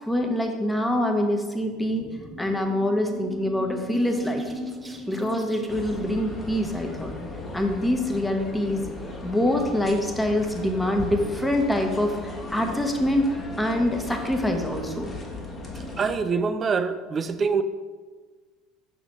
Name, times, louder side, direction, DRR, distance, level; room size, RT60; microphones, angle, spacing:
voice 1, 0.0-2.1 2.4-4.5 5.1-7.1 7.5-8.8 9.2-15.1, left 1 dB, 10° left, 3 dB, 1.0 m, -25 dB
sound 1, 1.6-7.1, right 1 dB, 15° right, 0.8 m, -38 dB
sound 2, 5.7-16.1, left 2 dB, 25° left, 1.3 m, -37 dB
voice 2, 16.0-17.6, right 5 dB, 35° right, 11 dB, 0.5 m, -25 dB
6.4 x 5.9 x 3.1 m, 1.4 s
hypercardioid pair, 70°, 0 cm